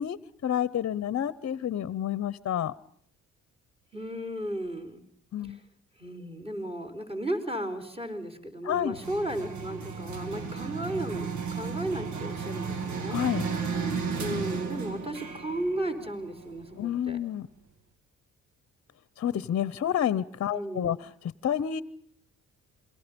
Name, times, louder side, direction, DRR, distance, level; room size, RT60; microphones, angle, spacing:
voice 1, 0.0-2.7 5.3-5.6 8.6-9.0 13.1-13.4 16.7-17.5 19.2-21.8, left 10 dB, 50° left, 18 dB, 0.9 m, -29 dB
voice 2, 3.9-5.0 5.4-5.6 6.0-13.2 14.2-17.2 20.5-20.9, right 1 dB, 20° right, 7 dB, 4.7 m, -34 dB
sound 1, 8.9-16.9, right 5 dB, 75° right, 2.4 m, -34 dB
27.5 x 22.0 x 5.3 m, 0.65 s
cardioid pair, 90°, 30 cm